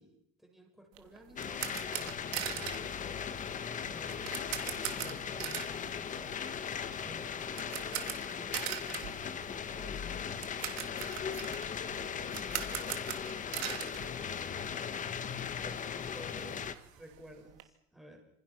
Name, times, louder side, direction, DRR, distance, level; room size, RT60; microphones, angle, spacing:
voice 1, 0.0-3.4 3.9-6.4 7.0-11.5 12.5-14.9 15.3-18.2, right 1 dB, ahead, 1 dB, 6.7 m, -55 dB
sound 1, 0.9-14.9 15.2-15.3 15.7-15.8 16.1-17.6, right 16 dB, 75° right, 3.0 m, -41 dB
sound 2, 1.4-16.7, left 7 dB, 25° left, 1.4 m, -38 dB
27.0 x 27.0 x 6.1 m, 0.76 s
cardioid pair, 155°, 31 cm